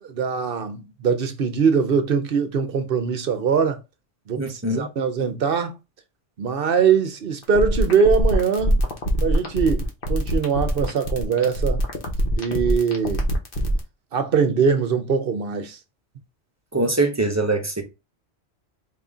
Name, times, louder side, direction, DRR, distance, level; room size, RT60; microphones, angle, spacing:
voice 1, 0.0-3.8 4.3-5.8 6.4-8.8 9.2-11.8 12.4-13.2 14.1-15.8, right 6 dB, 55° right, 0.8 m, -22 dB
voice 2, 4.4-4.9 16.7-17.8, right 2 dB, 15° right, 0.8 m, -23 dB
sound 1, 7.4-13.8, equal, 50° left, 1.2 m, -23 dB
4.8 x 2.8 x 3.6 m
omnidirectional pair, 1.2 m